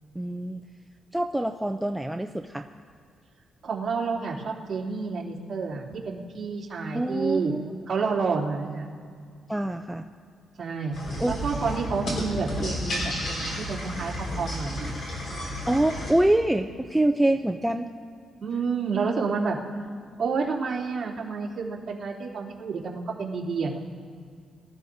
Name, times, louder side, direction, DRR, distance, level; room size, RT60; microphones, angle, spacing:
voice 1, 0.1-0.6 1.1-2.7 6.9-7.6 9.5-10.1 11.2-11.3 15.7-17.9, right 1 dB, 5° right, 5 dB, 0.4 m, -25 dB
voice 2, 3.6-7.5 7.9-8.9 10.6-11.0 11.2-13.0 13.3-14.9 18.4-19.6 20.2-23.8, right 5 dB, 45° right, -6 dB, 2.8 m, -29 dB
sound 1, 10.9-16.1, left 1 dB, 50° left, 3.9 m, -32 dB
23.5 x 13.5 x 2.7 m, 2.2 s
cardioid pair, 135°, 0 cm